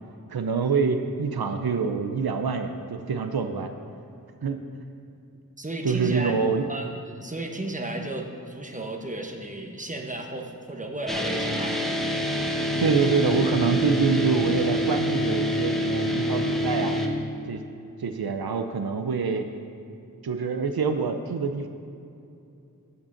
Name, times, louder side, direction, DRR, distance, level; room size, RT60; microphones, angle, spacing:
voice 1, 0.3-3.7 4.4-4.6 5.8-6.6 12.8-17.0 17.5-17.6 18.0-19.5 20.2-21.7, right 5 dB, 80° right, 7 dB, 0.6 m, -25 dB
voice 2, 5.6-6.4 6.7-6.9 7.2-12.0, right 1 dB, 20° right, 3 dB, 1.1 m, -34 dB
sound 1, 11.1-17.1, equal, ahead, 1.0 m, -26 dB
9.6 x 5.3 x 7.0 m, 2.6 s
wide cardioid pair, 40°, 36 cm